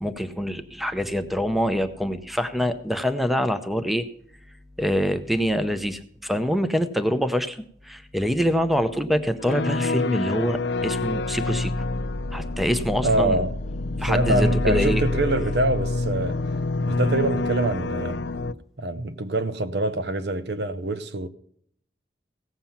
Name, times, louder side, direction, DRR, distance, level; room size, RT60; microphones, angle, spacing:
voice 1, 0.0-4.1 4.8-11.7 12.3-13.4 14.0-15.0, equal, ahead, 0.6 m, -25 dB
sound 1, 9.4-18.5, left 2 dB, 80° left, 0.6 m, -27 dB
voice 2, 13.0-13.6 14.0-16.4 16.9-18.2 18.8-21.3, right 1 dB, 70° right, 0.8 m, -25 dB
17.0 x 7.5 x 5.7 m
head